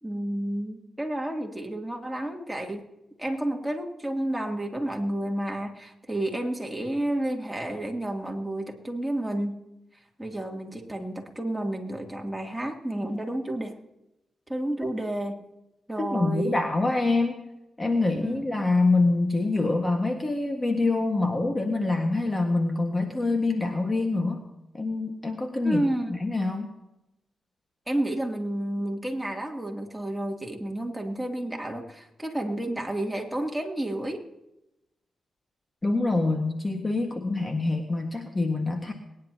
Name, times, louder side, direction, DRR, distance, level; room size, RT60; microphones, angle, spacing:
voice 1, 0.0-2.8 3.2-9.6 10.2-13.7 14.5-15.4 15.9-16.6 18.2-18.4 25.6-26.1 27.9-34.2, right 1 dB, 5° right, 1 dB, 2.8 m, -30 dB
voice 2, 16.0-17.4 17.8-24.4 24.7-26.7 35.8-38.9, left 2 dB, 25° left, 4 dB, 1.7 m, -25 dB
22.5 x 10.5 x 2.9 m, 0.90 s
cardioid pair, 60°, 0 cm